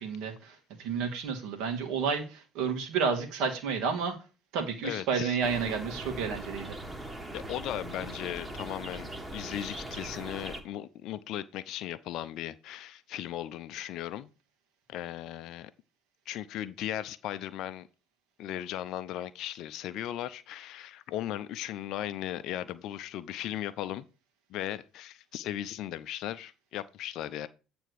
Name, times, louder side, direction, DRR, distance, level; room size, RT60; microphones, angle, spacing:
voice 1, 0.0-4.2 4.5-6.8, right 6 dB, 60° right, 1.8 m, -31 dB
voice 2, 4.8-5.4 7.3-14.3 14.9-15.7 16.3-17.9 18.4-24.1 24.5-27.5, left 12 dB, 55° left, 0.5 m, -37 dB
sound 1, 5.4-10.6, right 1 dB, 15° right, 1.6 m, -40 dB
9.1 x 3.5 x 6.4 m
figure-of-eight pair, 55°, 0 cm